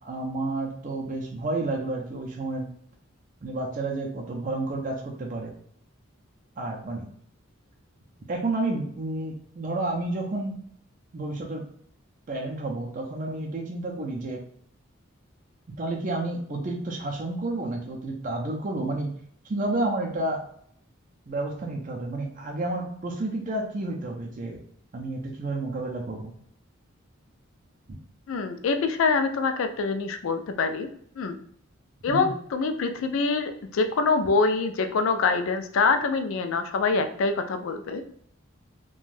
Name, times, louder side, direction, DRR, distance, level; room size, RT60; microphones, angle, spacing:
voice 1, 0.0-2.7 3.4-5.5 6.6-7.1 8.3-10.6 11.1-11.7 12.3-14.4 15.7-19.1 19.4-20.4 21.3-24.6 24.9-26.3 32.1-32.3, right 2 dB, 40° right, 0 dB, 0.4 m, -30 dB
voice 2, 28.3-30.9 31.2-31.4 32.0-38.0, left 4 dB, 70° left, 7 dB, 0.4 m, -25 dB
2.5 x 2.2 x 3.2 m, 0.64 s
head